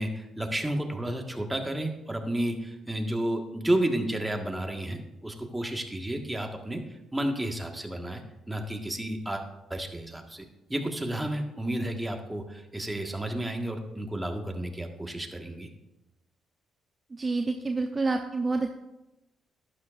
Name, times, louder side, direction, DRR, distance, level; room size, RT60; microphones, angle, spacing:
voice 1, 0.0-9.4 9.7-15.7, right 1 dB, 10° right, 3 dB, 1.5 m, -31 dB
voice 2, 17.2-18.7, right 3 dB, 35° right, 4 dB, 0.7 m, -28 dB
11.5 x 8.7 x 2.5 m, 0.97 s
hypercardioid pair, 55°, 0 cm